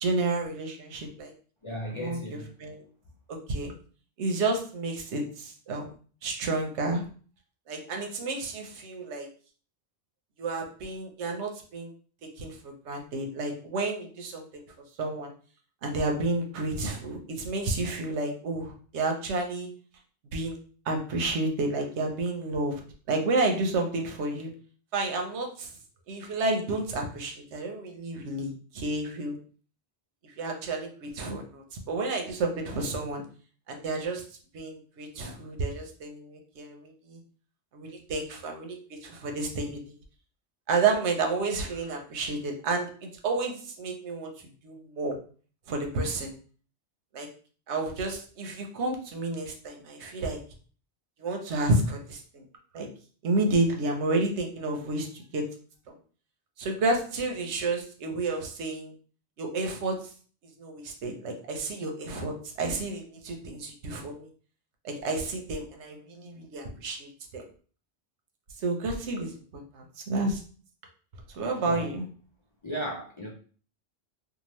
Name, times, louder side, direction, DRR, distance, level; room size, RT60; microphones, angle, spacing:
voice 1, 0.0-1.3 1.9-2.8 3.3-3.7 4.2-5.9 6.2-7.0 7.7-9.3 10.4-11.9 12.4-14.6 15.0-15.3 15.8-19.7 20.3-20.6 20.9-22.8 23.1-24.5 24.9-25.7 26.1-29.4 30.4-33.2 33.7-34.2 34.5-37.2 37.7-40.0 40.7-44.3 44.6-45.2 45.7-46.3 47.1-47.3 47.7-50.4 51.2-52.5 52.7-52.9 53.2-55.4 55.9-56.0 56.6-58.9 59.4-60.0 60.6-64.3 64.8-67.4 68.6-70.4 71.3-72.1, right 2 dB, 85° right, 3 dB, 1.0 m, -30 dB
voice 2, 1.6-2.5 71.6-71.9 72.6-73.3, equal, 40° left, -3 dB, 0.4 m, -35 dB
2.8 x 2.3 x 3.0 m, 0.42 s
omnidirectional pair, 1.1 m